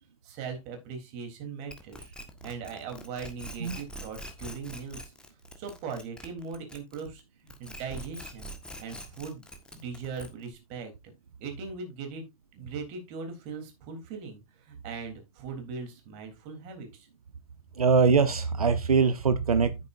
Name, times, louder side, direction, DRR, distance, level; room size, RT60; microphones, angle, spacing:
voice 1, 0.2-2.1 2.4-5.1 5.6-9.4 9.7-10.9 11.4-12.2 12.5-17.1, right 5 dB, 35° right, 3.5 m, -40 dB
sound 1, 1.7-7.2 7.5-10.5, equal, 5° left, 1.5 m, -44 dB
voice 2, 17.8-19.8, right 5 dB, 75° right, 1.0 m, -22 dB
11.0 x 9.1 x 2.6 m
figure-of-eight pair, 110°, 19 cm